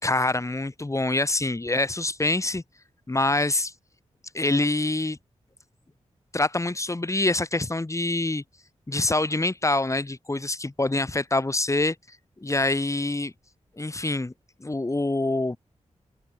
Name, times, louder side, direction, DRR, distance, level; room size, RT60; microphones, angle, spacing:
voice 1, 0.0-2.6 3.1-3.7 4.3-5.2 6.3-8.4 8.9-11.9 12.4-13.3 13.8-14.3 14.6-15.6, left 2 dB, 25° left, 6.7 m, -25 dB
open air
wide cardioid pair, 90°, 12 cm